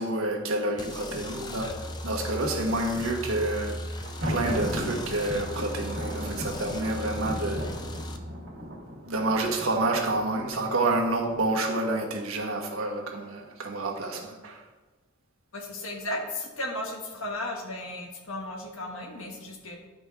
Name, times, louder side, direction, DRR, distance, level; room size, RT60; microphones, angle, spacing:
voice 1, 0.0-3.8 4.3-7.6 8.8-14.6, right 2 dB, 85° right, 1 dB, 1.4 m, -29 dB
sound 1, 0.8-8.2, left 1 dB, 20° left, 0.4 m, -37 dB
Thunder, 3.9-11.7, equal, 65° right, 1.8 m, -37 dB
voice 2, 15.5-19.8, left 1 dB, 80° left, 1 dB, 1.5 m, -35 dB
11.5 x 5.2 x 3.6 m, 1.2 s
head